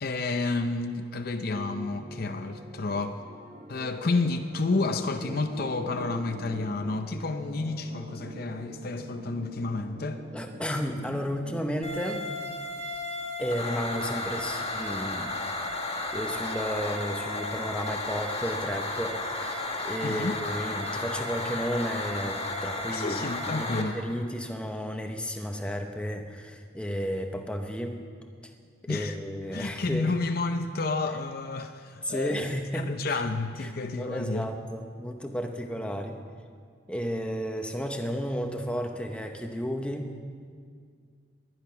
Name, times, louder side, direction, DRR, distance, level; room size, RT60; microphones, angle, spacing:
voice 1, 0.0-3.2 3.7-10.2 20.0-20.4 22.9-24.0 28.9-29.2 29.5-32.5 32.7-34.5, left 3 dB, 50° left, 7 dB, 0.6 m, -30 dB
sound 1, 1.5-11.6, equal, 35° right, 1.8 m, -43 dB
voice 2, 10.3-12.3 13.4-15.3 16.1-28.0 28.8-30.1 32.0-33.2 33.6-36.2 36.9-40.1, equal, 5° left, 4 dB, 0.9 m, -33 dB
sound 2, 11.8-23.8, left 2 dB, 30° left, 1.6 m, -33 dB
21.0 x 10.5 x 5.8 m, 2.1 s
head